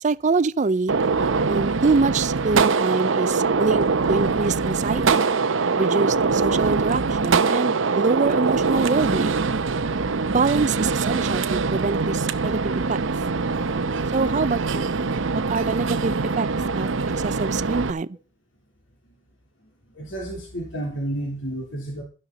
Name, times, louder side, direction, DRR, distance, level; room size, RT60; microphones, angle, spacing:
voice 1, 0.0-1.0 1.5-5.2 5.8-9.5 10.3-13.0 14.1-14.9 15.3-16.5 16.7-16.9 17.2-18.1, right 4 dB, 40° right, 0.5 m, -25 dB
Gunshot gunfire, 0.9-17.9, right 4 dB, 80° right, 0.7 m, -23 dB
voice 2, 19.9-22.0, right 1 dB, 75° left, 3.4 m, -31 dB
12.5 x 11.0 x 4.0 m
head